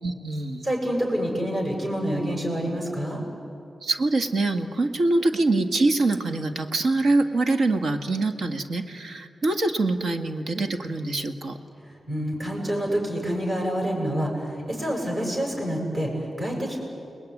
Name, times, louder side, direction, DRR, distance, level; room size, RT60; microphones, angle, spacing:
voice 1, 0.0-0.7 3.8-11.6, right 2 dB, 65° right, 6 dB, 1.8 m, -24 dB
voice 2, 0.6-3.2 12.1-16.8, equal, 35° right, 0 dB, 7.4 m, -27 dB
30.0 x 20.5 x 9.7 m, 2.7 s
wide cardioid pair, 135°, 0 cm